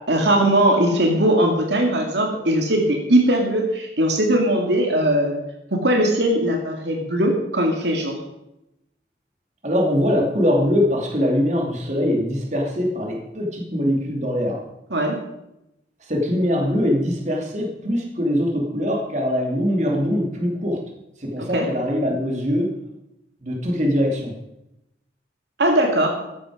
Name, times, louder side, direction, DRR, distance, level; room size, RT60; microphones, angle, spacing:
voice 1, 0.1-5.4 5.7-8.1 14.9-15.2 21.5-21.6 25.6-26.1, right 1 dB, 75° right, 2 dB, 2.3 m, -19 dB
voice 2, 9.6-14.6 16.0-20.8 21.2-22.7 23.4-24.3, equal, 40° right, 0 dB, 2.8 m, -22 dB
14.0 x 11.5 x 5.0 m, 0.86 s
head